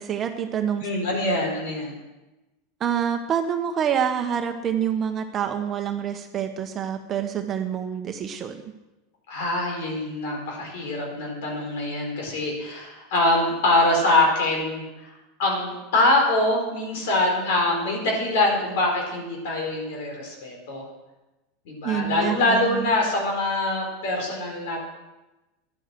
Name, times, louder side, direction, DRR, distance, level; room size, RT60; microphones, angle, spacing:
voice 1, 0.0-0.8 2.8-8.6 21.8-22.9, right 8 dB, 35° right, 6 dB, 1.0 m, -27 dB
voice 2, 0.8-1.9 9.3-15.1 15.4-20.8 21.7-24.8, left 2 dB, 75° left, 0 dB, 4.4 m, -24 dB
11.0 x 9.9 x 7.5 m, 1.0 s
supercardioid pair, 110°, 0 cm